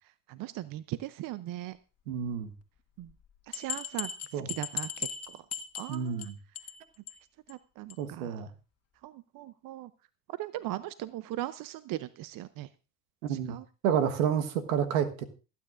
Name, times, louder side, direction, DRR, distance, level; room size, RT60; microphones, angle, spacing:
voice 1, 0.3-1.8 3.0-3.1 3.5-5.4 5.7-6.3 7.5-8.4 9.0-9.9 10.3-12.7 13.3-13.6, right 15 dB, 55° right, 15 dB, 0.7 m, -39 dB
voice 2, 2.1-2.5 4.3-4.5 5.9-6.3 8.0-8.5 13.2-13.6 13.8-15.2, right 8 dB, 80° right, 9 dB, 1.5 m, -29 dB
sound 1, 3.1-3.2 3.5-6.3 6.5-6.8 7.1-7.2 7.5-7.6 7.9-8.0, left 8 dB, 35° left, 1.6 m, -37 dB
27.5 x 9.4 x 2.5 m, 0.33 s
hypercardioid pair, 65°, 41 cm